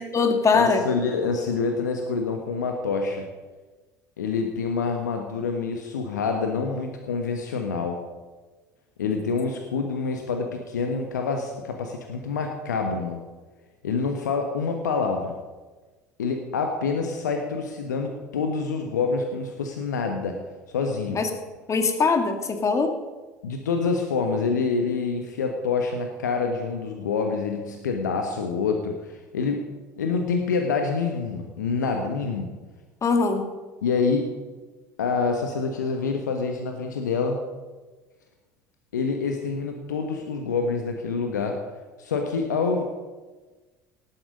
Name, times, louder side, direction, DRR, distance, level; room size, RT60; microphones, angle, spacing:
voice 1, 0.0-0.8 21.1-21.3 21.7-22.9 33.0-33.4, left 4 dB, 35° left, 6 dB, 2.0 m, -21 dB
voice 2, 0.5-3.2 4.2-8.0 9.0-13.2 13.8-15.3 16.2-20.4 20.7-21.2 23.4-29.6 30.0-32.5 33.8-34.2 35.0-37.4 38.9-41.6 42.0-42.9, left 4 dB, 80° left, 4 dB, 1.3 m, -26 dB
18.0 x 8.7 x 5.3 m, 1.2 s
figure-of-eight pair, 65°, 9 cm